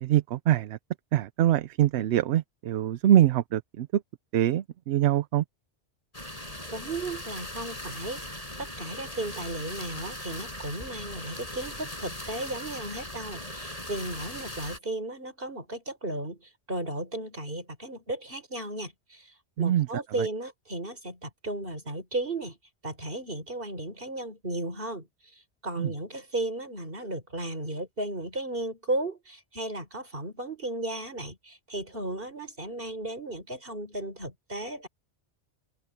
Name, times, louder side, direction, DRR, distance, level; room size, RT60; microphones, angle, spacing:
voice 1, 0.0-0.8 1.1-4.0 4.3-5.4 19.6-20.3 25.8-25.9, right 12 dB, 75° right, 0.8 m, -24 dB
sound 1, 6.1-14.8, left 1 dB, 35° left, 6.5 m, -39 dB
voice 2, 6.7-8.2 8.6-19.3 19.6-22.6 22.8-25.1 25.6-34.9, right 2 dB, 55° right, 4.9 m, -35 dB
open air
omnidirectional pair, 1.1 m